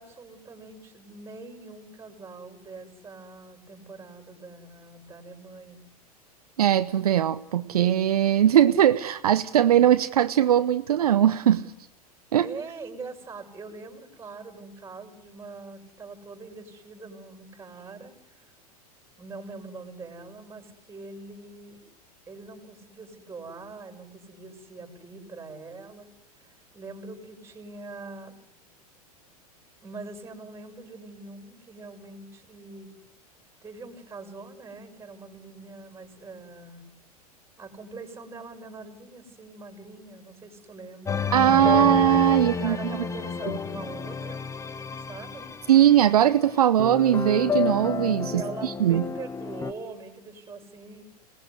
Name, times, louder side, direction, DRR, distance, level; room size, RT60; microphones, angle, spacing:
voice 1, 0.0-5.8 12.4-18.4 19.2-21.8 22.3-26.1 26.4-28.3 29.8-32.9 33.6-36.8 37.6-41.3 42.3-44.4 45.0-45.5 48.3-51.0, right 3 dB, 15° right, 6.0 m, -43 dB
voice 2, 6.6-11.6 12.3-12.5 41.3-42.8 45.7-49.0, right 11 dB, 75° right, 0.9 m, -20 dB
sound 1, 41.1-46.2 46.8-49.7, left 6 dB, 15° left, 1.1 m, -30 dB
26.0 x 19.5 x 8.1 m
hypercardioid pair, 95°, 20 cm